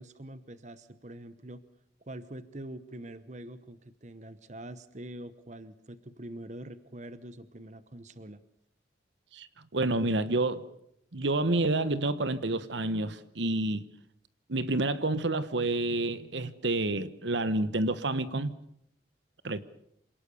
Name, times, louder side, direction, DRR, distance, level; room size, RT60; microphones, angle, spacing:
voice 1, 0.0-1.6 2.1-8.4, right 1 dB, 40° right, 0.9 m, -44 dB
voice 2, 9.7-10.6 11.1-13.8 14.5-18.5 19.4-19.7, right 2 dB, 70° right, 1.1 m, -29 dB
27.0 x 18.5 x 6.9 m
head